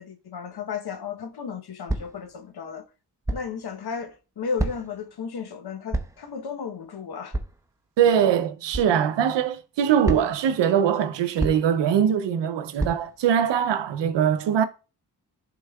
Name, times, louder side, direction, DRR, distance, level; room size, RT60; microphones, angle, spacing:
voice 1, 0.0-2.9 3.3-7.4, left 6 dB, 60° left, 1.0 m, -34 dB
sound 1, 1.9-2.3 3.3-3.6 4.6-5.0 5.9-6.3 7.3-7.7 8.7-8.9 10.0-10.5 11.4-11.8 12.8-13.2, right 2 dB, 10° right, 0.8 m, -29 dB
voice 2, 8.0-14.7, right 8 dB, 85° right, 0.7 m, -22 dB
11.0 x 3.9 x 2.3 m
cardioid pair, 50°, 42 cm